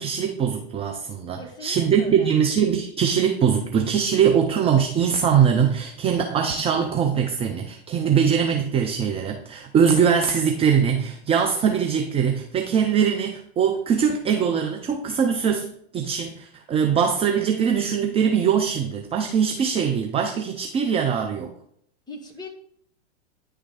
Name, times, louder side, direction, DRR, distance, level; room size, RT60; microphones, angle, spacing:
voice 1, 0.0-21.5, right 7 dB, 15° right, 5 dB, 0.5 m, -22 dB
voice 2, 1.3-2.3 22.1-22.5, left 2 dB, 10° left, 1 dB, 1.4 m, -40 dB
9.6 x 3.3 x 4.8 m, 0.69 s
hypercardioid pair, 105°, 33 cm